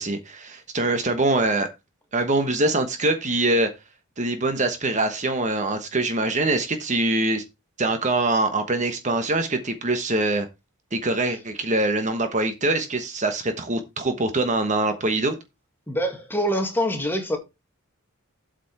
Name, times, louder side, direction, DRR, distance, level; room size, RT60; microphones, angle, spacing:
voice 1, 0.0-1.7 2.1-3.7 4.2-7.4 7.8-10.5 10.9-15.3, right 2 dB, 35° right, 1.2 m, -23 dB
voice 2, 15.9-17.4, equal, 10° left, 2.0 m, -25 dB
8.3 x 5.1 x 5.9 m
head